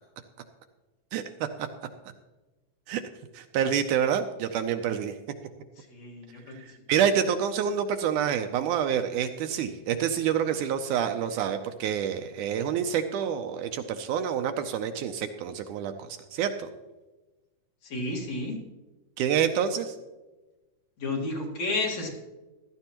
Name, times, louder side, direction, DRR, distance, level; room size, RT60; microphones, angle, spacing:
voice 1, 3.3-5.1 6.9-16.7 19.2-20.0, right 8 dB, 80° right, 7 dB, 2.0 m, -27 dB
voice 2, 5.9-6.5 17.8-18.6 21.0-22.1, left 2 dB, 55° left, -1 dB, 2.8 m, -31 dB
15.0 x 12.5 x 2.9 m, 1.2 s
omnidirectional pair, 3.8 m